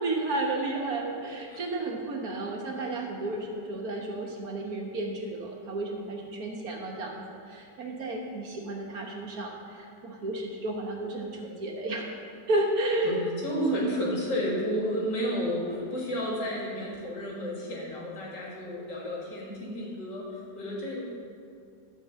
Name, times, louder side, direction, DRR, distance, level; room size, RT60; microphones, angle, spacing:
voice 1, 0.0-12.1 12.5-13.2 13.5-14.2, right 2 dB, 55° right, -1 dB, 1.6 m, -32 dB
voice 2, 13.0-20.3 20.5-21.0, equal, 75° left, -4 dB, 2.8 m, -32 dB
12.5 x 4.6 x 7.4 m, 2.4 s
omnidirectional pair, 1.9 m